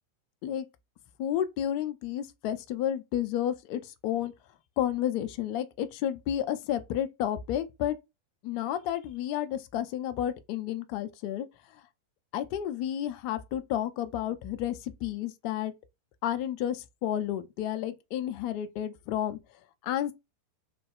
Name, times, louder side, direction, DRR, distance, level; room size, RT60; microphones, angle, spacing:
voice 1, 1.2-4.3 4.8-8.0 8.4-11.5 12.3-15.7 16.2-19.4 19.8-20.1, left 11 dB, 45° left, 0.5 m, -31 dB
3.2 x 2.2 x 3.5 m
figure-of-eight pair, 90°, 0 cm